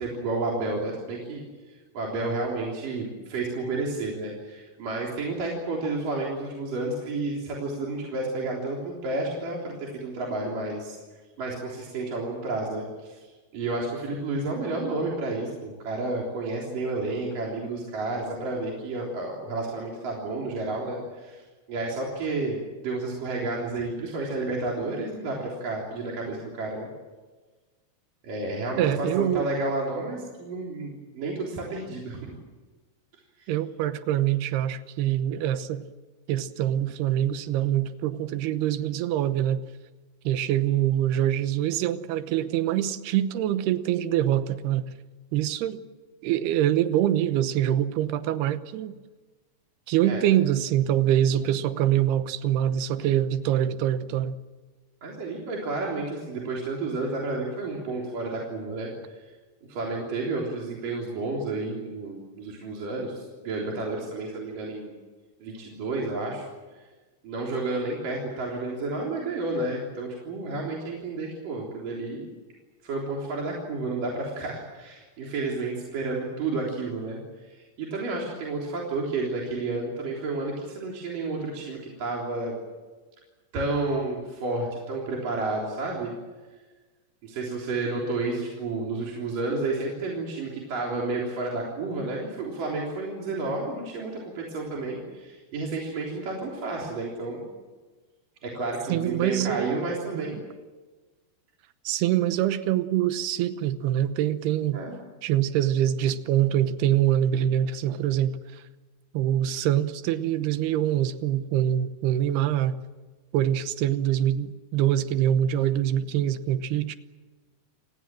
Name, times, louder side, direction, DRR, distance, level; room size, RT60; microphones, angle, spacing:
voice 1, 0.0-10.9 11.4-13.2 13.5-21.4 21.7-26.9 28.2-32.3 33.4-33.5 50.0-50.3 55.0-59.2 59.7-64.9 65.4-66.5 67.2-72.3 72.8-82.5 83.5-86.2 87.2-97.4 98.4-100.4 104.7-105.0, right 2 dB, 50° right, -2 dB, 5.0 m, -31 dB
voice 2, 28.8-29.5 33.5-35.8 36.3-39.6 40.3-44.9 45.3-45.8 46.2-48.9 49.9-54.4 98.9-99.7 100.1-100.2 101.9-104.8 105.2-108.6 109.1-112.8 113.3-117.0, right 11 dB, 75° right, 12 dB, 2.9 m, -24 dB
29.0 x 19.0 x 7.6 m, 1.3 s
omnidirectional pair, 5.0 m